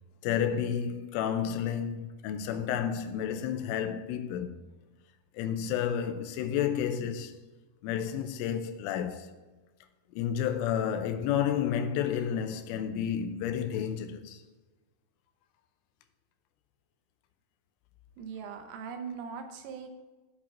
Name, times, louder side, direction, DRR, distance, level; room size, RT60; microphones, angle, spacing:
voice 1, 0.2-4.6 5.3-7.4 7.8-9.3 10.1-14.4, left 9 dB, 85° left, 3.2 m, -31 dB
voice 2, 18.2-19.9, right 6 dB, 90° right, 3.6 m, -40 dB
8.9 x 4.9 x 7.1 m
omnidirectional pair, 5.7 m